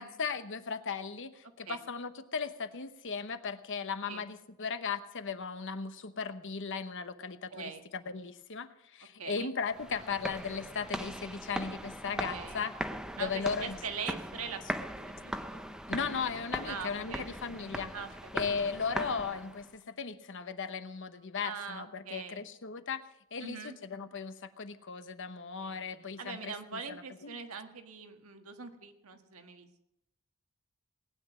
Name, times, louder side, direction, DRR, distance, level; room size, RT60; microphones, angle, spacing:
voice 1, 0.0-12.7 13.2-13.8 15.9-17.9 18.3-23.0 23.3-27.4, left 5 dB, 60° left, 10 dB, 1.0 m, -37 dB
voice 2, 7.5-7.8 9.2-9.5 12.3-12.6 13.2-14.6 14.9-15.6 16.7-17.2 17.9-18.6 21.4-22.4 23.4-23.8 25.6-25.9 26.2-29.8, right 5 dB, 70° right, 6 dB, 1.6 m, -42 dB
sound 1, 9.7-19.7, equal, 5° right, 0.6 m, -40 dB
19.0 x 9.8 x 6.1 m, 0.84 s
head